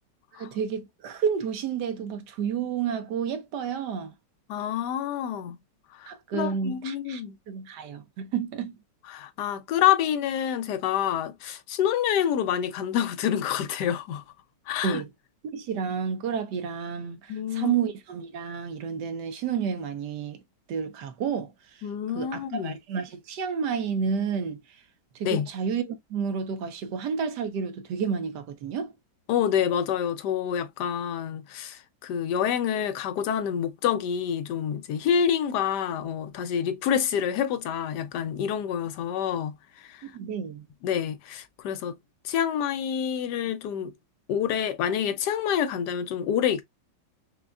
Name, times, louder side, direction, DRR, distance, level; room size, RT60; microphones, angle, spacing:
voice 1, 0.4-4.1 6.1-7.2 7.5-8.7 14.8-15.1 15.5-20.4 20.7-21.5 22.1-24.6 25.2-28.9 40.1-40.6, right 7 dB, 75° right, 1.3 m, -30 dB
voice 2, 4.5-5.6 5.9-7.3 9.1-14.2 14.7-15.0 17.3-17.8 21.8-22.8 25.2-25.5 29.3-40.0 40.8-42.0 42.2-43.9 44.3-46.6, left 9 dB, 75° left, 1.1 m, -27 dB
5.1 x 2.2 x 2.3 m
omnidirectional pair, 1.9 m